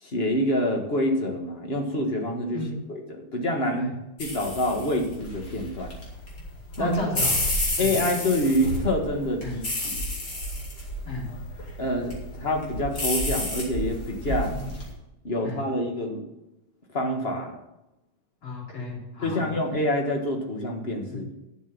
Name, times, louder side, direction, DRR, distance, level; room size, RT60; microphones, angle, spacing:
voice 1, 0.0-3.9 4.2-5.9 6.8-7.0 7.8-10.0 11.8-14.5 15.2-16.2 16.9-17.6 19.2-21.3, left 1 dB, 30° left, 2 dB, 1.7 m, -27 dB
sound 1, 4.2-14.9, left 1 dB, 50° left, 3.4 m, -31 dB
voice 2, 6.8-7.3 7.8-7.9 9.4-9.5 11.1-11.3 14.3-14.6 15.4-15.6 18.4-19.5 21.1-21.2, left 2 dB, 75° left, -4 dB, 4.5 m, -33 dB
11.5 x 7.0 x 6.9 m, 0.93 s
omnidirectional pair, 2.3 m